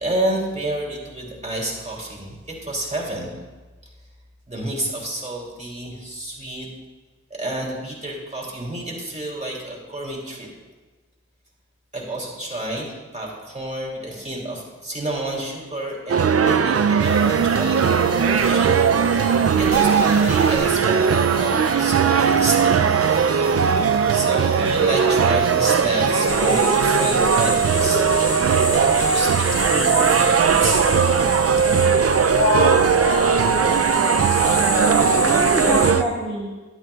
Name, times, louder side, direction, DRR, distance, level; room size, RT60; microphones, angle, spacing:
voice 1, 0.0-3.3 4.5-6.7 7.3-10.5 11.9-17.8 18.2-21.5 21.8-22.8 24.1-28.3 28.6-30.8, right 1 dB, 25° right, -3 dB, 2.9 m, -29 dB
sound 1, 16.1-36.0, right 6 dB, 55° right, 0.4 m, -18 dB
sound 2, 17.0-31.7, equal, 65° left, 2.1 m, -39 dB
sound 3, 26.3-35.9, left 2 dB, 85° left, 1.6 m, -26 dB
voice 2, 34.6-36.6, right 1 dB, 5° left, -8 dB, 1.9 m, -27 dB
11.5 x 9.3 x 2.4 m, 1.2 s
cardioid pair, 40°, 30 cm